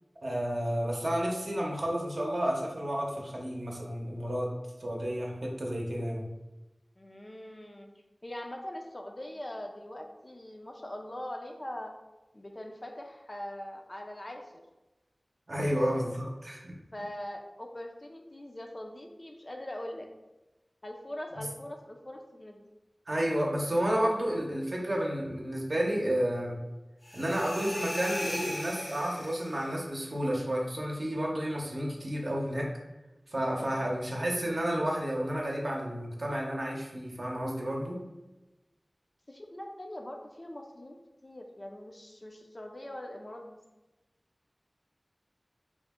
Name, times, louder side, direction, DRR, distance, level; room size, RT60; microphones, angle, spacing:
voice 1, 0.2-4.5 4.8-6.3 15.5-16.7 21.4-21.5 23.1-26.6 27.1-32.7 33.3-38.0, equal, 65° right, -2 dB, 0.7 m, -31 dB
voice 2, 7.0-7.9 8.2-11.9 12.3-14.5 15.5-16.2 16.9-20.1 20.8-22.7 33.6-33.9 39.3-41.0 41.2-43.6, left 1 dB, 35° left, 2 dB, 0.4 m, -42 dB
sound 1, 27.0-29.8, left 1 dB, 75° left, 0.8 m, -38 dB
3.6 x 2.0 x 3.5 m, 1.0 s
wide cardioid pair, 60°, 0 cm